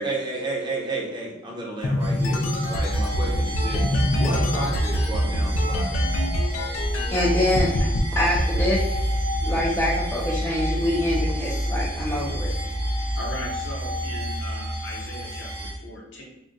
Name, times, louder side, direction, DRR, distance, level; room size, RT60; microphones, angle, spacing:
voice 1, 0.0-2.4 2.7-3.9 4.1-6.0 12.1-12.4, right 2 dB, 25° right, -4 dB, 0.8 m, -32 dB
sound 1, 1.8-7.2 7.6-8.0 8.4-9.8, equal, 85° left, 0.5 m, -24 dB
sound 2, 2.0-15.7, equal, 55° right, 0.8 m, -29 dB
voice 2, 7.1-12.8, left 1 dB, 10° left, -6 dB, 0.4 m, -26 dB
voice 3, 13.1-16.2, left 1 dB, 65° left, -2 dB, 0.8 m, -38 dB
3.6 x 2.1 x 2.5 m, 0.91 s
head